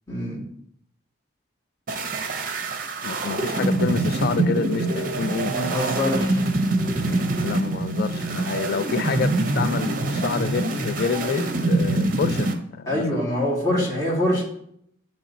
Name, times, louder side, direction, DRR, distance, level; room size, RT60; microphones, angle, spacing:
voice 1, 0.1-0.4 5.5-6.4 12.9-14.4, left 1 dB, 15° left, 2.1 m, -24 dB
sound 1, 1.9-12.5, right 2 dB, 45° right, 0.7 m, -24 dB
voice 2, 3.0-5.5 7.4-13.2, left 5 dB, 50° left, 0.3 m, -28 dB
8.6 x 3.1 x 4.0 m
head